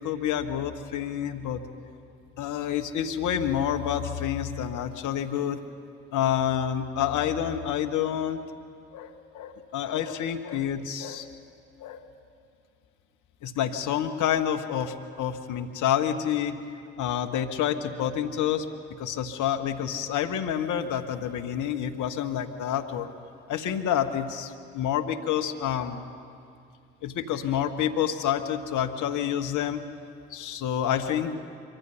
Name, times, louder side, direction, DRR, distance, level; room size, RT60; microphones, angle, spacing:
voice 1, 0.0-1.6 2.4-5.6 6.1-8.4 8.9-11.3 11.8-12.0 13.4-16.6 17.0-23.1 23.5-26.0 27.0-29.8 30.3-31.4, left 9 dB, 65° left, 6 dB, 1.4 m, -28 dB
24.5 x 24.0 x 5.7 m, 2.4 s
hypercardioid pair, 45°, 32 cm